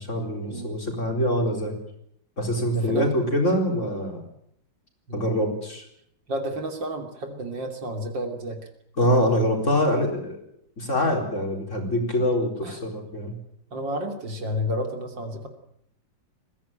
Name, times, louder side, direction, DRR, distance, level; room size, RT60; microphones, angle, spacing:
voice 1, 0.0-1.7 2.4-4.2 5.1-5.8 9.0-10.4 10.8-13.3, left 1 dB, 40° left, 2 dB, 4.5 m, -24 dB
voice 2, 2.7-3.1 5.1-5.4 6.3-8.6 12.6-12.8 13.7-15.5, equal, 75° right, 5 dB, 3.7 m, -31 dB
21.0 x 16.0 x 9.0 m, 0.72 s
omnidirectional pair, 2.0 m